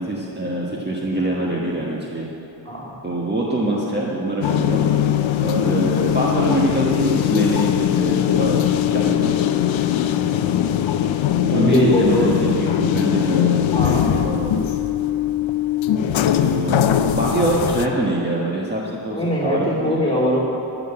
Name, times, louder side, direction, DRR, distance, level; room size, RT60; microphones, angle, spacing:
voice 1, 0.0-2.3 3.0-4.8 5.4-9.7 11.4-14.7 16.4-20.0, right 1 dB, 20° right, -5 dB, 1.5 m, -24 dB
voice 2, 2.6-3.0 3.6-3.8 11.5-12.3 13.7-14.2 15.9-16.2 19.1-20.5, left 1 dB, 10° left, -4 dB, 3.4 m, -21 dB
sound 1, 4.4-17.9, left 10 dB, 75° left, 0.7 m, -20 dB
13.5 x 6.4 x 8.8 m, 3.0 s
wide cardioid pair, 100°, 46 cm